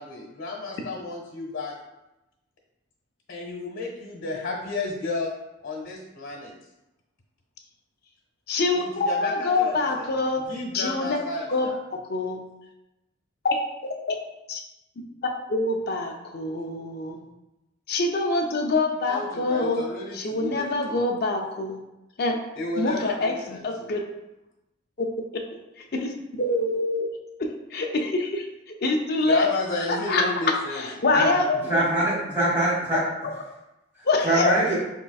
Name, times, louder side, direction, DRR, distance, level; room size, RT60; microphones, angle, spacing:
voice 1, 0.0-1.7 3.3-5.3 5.6-6.5 8.7-10.1 10.4-11.8 19.0-21.0 22.5-23.9 29.2-31.1 31.6-31.7, left 3 dB, 75° left, -2 dB, 0.9 m, -32 dB
voice 2, 8.5-10.4 10.7-11.2 11.5-12.4 13.4-13.6 13.8-14.2 14.5-14.6 15.5-17.2 17.9-19.8 20.1-21.8 22.2-22.4 22.8-24.0 25.0-25.1 25.3-25.4 25.9-27.1 27.4-28.5 28.8-29.5 29.9-30.3 30.7-31.9 34.1-34.5, left 2 dB, 50° left, 1 dB, 0.5 m, -25 dB
voice 3, 31.7-33.0 34.2-34.7, right 1 dB, 10° right, -7 dB, 1.4 m, -22 dB
4.1 x 3.6 x 2.3 m, 0.95 s
head